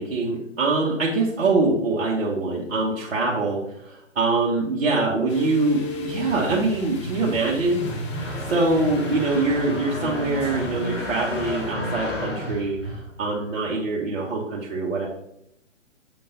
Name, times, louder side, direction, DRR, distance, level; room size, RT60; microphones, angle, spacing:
voice 1, 0.0-7.9 8.5-15.1, right 3 dB, 50° right, -5 dB, 1.3 m, -24 dB
sound 1, 5.3-11.7, left 7 dB, 25° left, 0.7 m, -40 dB
sound 2, 5.9-13.5, equal, 65° left, 2.5 m, -32 dB
7.0 x 3.7 x 3.9 m, 0.77 s
figure-of-eight pair, 130°, 38 cm